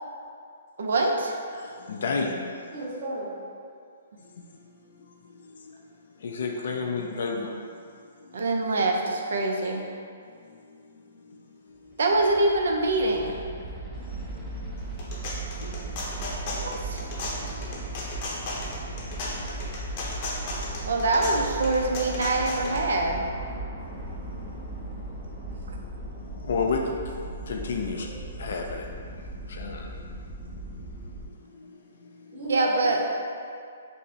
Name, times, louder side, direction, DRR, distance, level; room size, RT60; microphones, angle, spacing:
voice 1, 0.8-1.4 8.3-9.8 12.0-13.4 16.5-17.0 20.8-23.2 32.5-33.0, right 2 dB, 75° right, 2 dB, 0.5 m, -24 dB
voice 2, 1.5-2.7 4.2-5.7 6.0-7.8 8.2-8.4 10.3-11.7 14.0-15.1 15.5-16.7 17.5-17.9 18.3-18.4 19.9-20.8 23.9-25.3 25.7-32.4, left 4 dB, 70° left, 1 dB, 0.3 m, -35 dB
voice 3, 2.7-3.4 28.0-28.1 32.3-33.1, right 1 dB, 30° right, -12 dB, 1.0 m, -34 dB
sound 1, 11.9-31.3, right 2 dB, 5° right, 0.5 m, -37 dB
sound 2, 14.8-22.8, left 2 dB, 40° left, 0.7 m, -35 dB
5.3 x 2.0 x 2.7 m, 2.3 s
hypercardioid pair, 150°, 0 cm